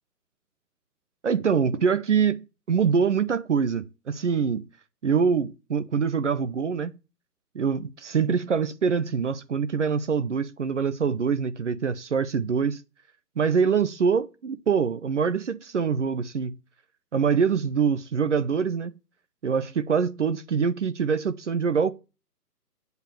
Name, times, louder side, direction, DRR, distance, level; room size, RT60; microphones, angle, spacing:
voice 1, 1.2-4.7 5.0-7.0 7.5-12.8 13.4-16.5 17.1-18.9 19.4-21.9, right 6 dB, 45° right, 0.8 m, -24 dB
8.1 x 7.1 x 5.9 m
hypercardioid pair, 165°, 49 cm